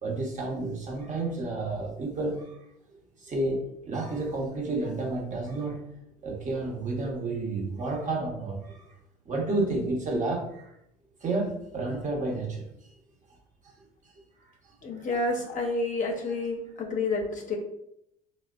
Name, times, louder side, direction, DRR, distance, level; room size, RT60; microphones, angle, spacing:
voice 1, 0.0-2.6 3.2-5.8 6.2-8.8 9.3-10.7 11.2-12.7, right 2 dB, 40° right, -1 dB, 0.9 m, -30 dB
voice 2, 14.8-17.6, left 3 dB, 40° left, 2 dB, 0.6 m, -29 dB
3.2 x 2.1 x 2.3 m, 0.78 s
supercardioid pair, 80°, 20 cm